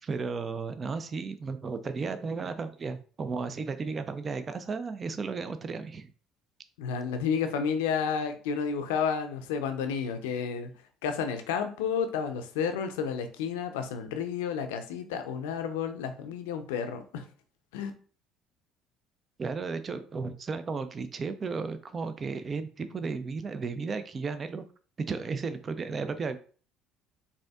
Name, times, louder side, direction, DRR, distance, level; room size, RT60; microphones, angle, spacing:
voice 1, 0.0-6.1 19.4-24.6 25.0-26.4, right 4 dB, 40° right, 10 dB, 0.4 m, -34 dB
voice 2, 6.8-10.7 11.0-17.2 17.7-17.9, left 6 dB, 80° left, 7 dB, 0.5 m, -31 dB
4.1 x 2.7 x 2.3 m, 0.40 s
hypercardioid pair, 65°, 0 cm